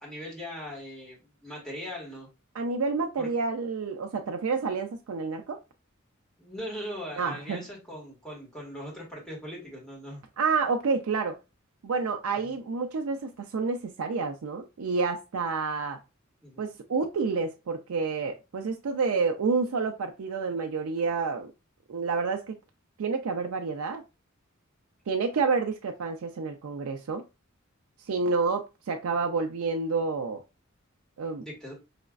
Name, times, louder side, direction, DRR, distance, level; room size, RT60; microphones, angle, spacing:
voice 1, 0.0-2.3 3.2-3.3 6.4-10.2 12.4-12.6 16.4-16.7 31.4-31.7, equal, 5° left, 1.8 m, -40 dB
voice 2, 2.5-5.6 7.2-7.6 10.4-11.4 11.8-16.0 16.6-21.5 21.9-22.6 23.0-24.0 25.1-27.2 28.1-30.4 31.2-31.4, right 4 dB, 90° right, 0.4 m, -29 dB
4.9 x 3.1 x 2.4 m
head